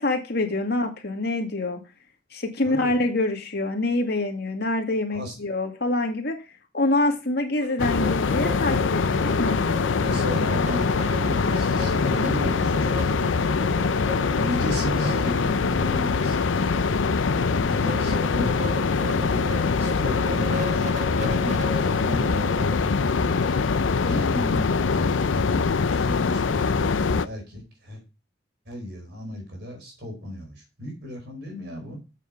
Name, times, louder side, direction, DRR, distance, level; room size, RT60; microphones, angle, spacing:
voice 1, 0.0-1.8 2.3-6.4 6.7-9.6, left 2 dB, 55° left, 3 dB, 2.3 m, -25 dB
voice 2, 2.6-2.9 5.1-5.4 7.8-7.9 10.0-13.5 14.4-19.5 19.8-23.4 24.0-28.0 28.7-32.0, equal, 60° right, 3 dB, 4.6 m, -35 dB
sound 1, 7.6-24.3, left 1 dB, 40° right, 1.3 m, -37 dB
sound 2, 7.8-27.3, left 4 dB, 90° left, 0.6 m, -23 dB
8.2 x 7.2 x 5.2 m, 0.29 s
head